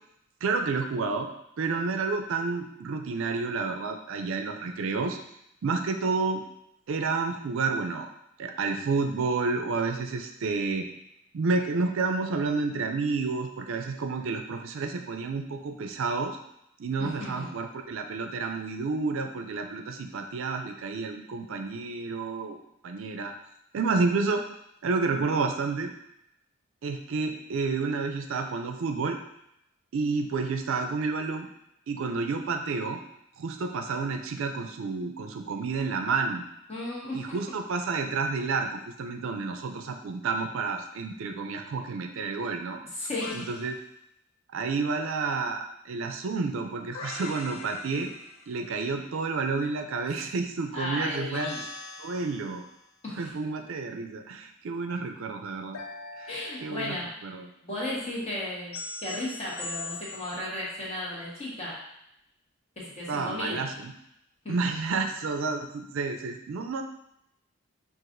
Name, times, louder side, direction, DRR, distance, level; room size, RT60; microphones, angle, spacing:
voice 1, 0.4-1.3 1.6-5.2 5.6-6.4 6.9-8.1 8.4-10.9 11.3-16.4 16.8-22.6 22.8-23.3 23.7-24.4 24.8-25.9 26.8-29.2 29.9-31.5 31.9-33.0 33.4-36.4 37.1-42.8 43.3-43.7 44.5-48.1 48.5-51.6 52.0-52.6 53.2-55.8 56.2-56.3 56.6-57.0 57.2-57.5 63.1-63.9 64.5-66.8, right 4 dB, 65° right, 5 dB, 0.4 m, -30 dB
voice 2, 17.0-17.5 36.7-37.2 42.9-43.4 50.7-51.6 53.0-53.3 56.3-57.1 57.6-61.8 62.8-63.7 64.4-64.7, left 1 dB, 30° left, -7 dB, 1.3 m, -34 dB
sound 1, 43.2-43.7 46.9-48.7 51.3-52.8 55.7-57.2 58.7-60.5, left 3 dB, 80° left, 0.4 m, -41 dB
5.7 x 2.5 x 2.5 m, 0.80 s
head